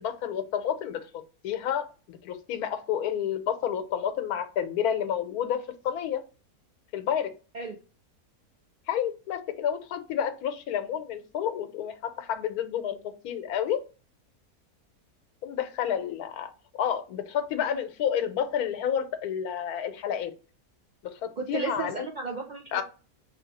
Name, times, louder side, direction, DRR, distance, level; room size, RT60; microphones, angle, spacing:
voice 1, 0.0-6.2 6.9-7.3 8.9-13.8 15.4-20.3 21.1-22.0 22.7-22.8, left 9 dB, 80° left, 9 dB, 1.1 m, -30 dB
voice 2, 21.4-22.8, right 4 dB, 90° right, 1 dB, 0.4 m, -33 dB
3.2 x 3.0 x 4.0 m, 0.34 s
omnidirectional pair, 1.6 m